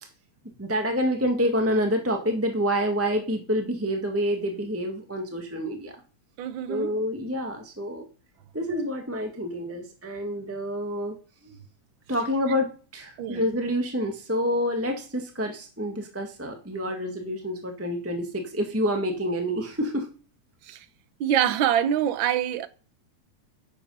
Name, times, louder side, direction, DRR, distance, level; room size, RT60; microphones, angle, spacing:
voice 1, 0.6-6.0 6.7-8.0 8.5-11.1 11.4-11.6 12.1-20.1, equal, 10° right, 0.8 m, -28 dB
voice 2, 6.4-6.9 13.2-13.4 20.7-20.8 21.2-22.7, right 10 dB, 70° right, 1.1 m, -25 dB
10.5 x 9.8 x 5.5 m
omnidirectional pair, 3.3 m